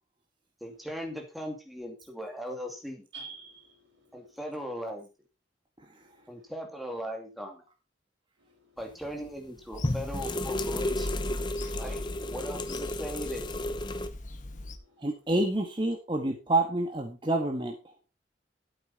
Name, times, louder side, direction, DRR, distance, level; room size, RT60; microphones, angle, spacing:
voice 1, 0.6-3.1 4.1-5.1 6.3-7.7 8.8-11.2 11.8-13.6, equal, ahead, 2.5 m, -39 dB
voice 2, 3.1-4.2 6.0-6.5 8.7-8.8 14.7-15.1, right 4 dB, 80° right, 5.0 m, -49 dB
sound 1, 9.0-9.3 9.8-14.1, left 1 dB, 25° left, 0.8 m, -33 dB
Bird vocalization bird call bird song / Telephone, 9.7-14.8, left 1 dB, 45° left, 1.3 m, -39 dB
voice 3, 15.0-17.7, right 2 dB, 25° right, 1.6 m, -28 dB
12.5 x 8.9 x 4.2 m
head